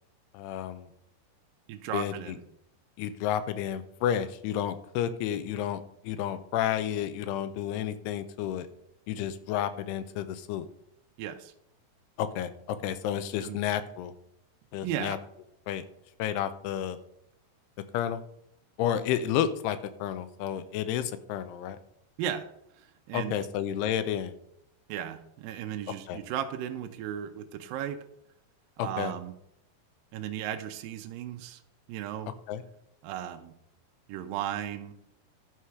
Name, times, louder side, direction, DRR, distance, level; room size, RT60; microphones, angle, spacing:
voice 1, 0.3-0.9 1.9-2.4 3.0-8.7 9.1-10.7 12.2-14.1 14.7-15.2 15.7-15.8 16.2-17.0 17.9-18.2 18.8-21.8 23.1-24.3 26.1-26.2 28.8-29.1 32.5-32.6, left 10 dB, 85° left, 12 dB, 2.7 m, -31 dB
voice 2, 1.7-2.4 11.2-11.5 13.4-13.6 14.8-15.2 22.2-22.5 22.8-23.4 24.9-28.1 28.8-29.3 30.1-31.6 31.9-32.3 33.0-33.5 34.1-34.9, right 10 dB, 80° right, 6 dB, 2.1 m, -35 dB
11.5 x 4.8 x 5.8 m, 0.75 s
omnidirectional pair, 4.7 m